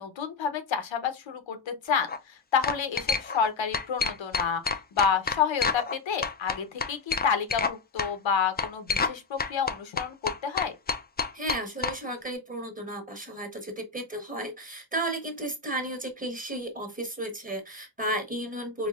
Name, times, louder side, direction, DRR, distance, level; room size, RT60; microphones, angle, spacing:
voice 1, 0.0-10.7, left 6 dB, 85° left, 0.9 m, -29 dB
sound 1, 1.9-2.2 2.6-3.5 3.7-6.0 6.2-7.7 8.0-8.1 8.6-9.1 9.4-12.0, left 5 dB, 25° left, 0.3 m, -28 dB
voice 2, 11.3-18.9, right 1 dB, 20° right, 1.1 m, -33 dB
4.5 x 2.7 x 2.4 m
wide cardioid pair, 125°, 45 cm